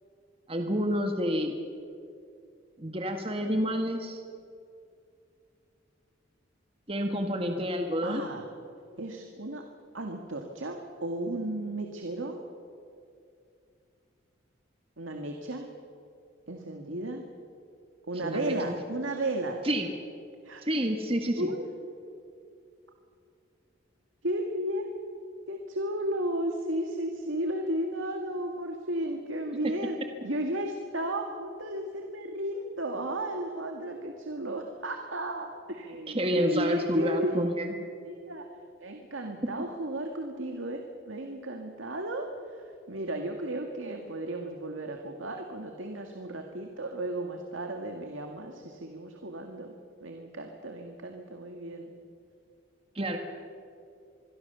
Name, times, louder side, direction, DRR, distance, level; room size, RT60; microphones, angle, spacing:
voice 1, 0.5-1.5 2.8-4.2 6.9-8.2 18.1-18.7 19.6-19.9 20.6-21.5 36.1-37.7 52.9-53.2, equal, 30° right, 4 dB, 1.7 m, -29 dB
voice 2, 8.0-8.4 9.0-9.7 9.9-12.4 15.0-15.7 16.5-17.2 18.1-19.6 20.4-20.6 21.4-21.6 24.2-24.9 25.5-30.0 30.2-37.5 38.1-38.5 38.8-42.3 42.9-49.8 50.0-51.9, right 1 dB, 85° right, 3 dB, 2.1 m, -34 dB
26.0 x 22.0 x 7.0 m, 2.5 s
head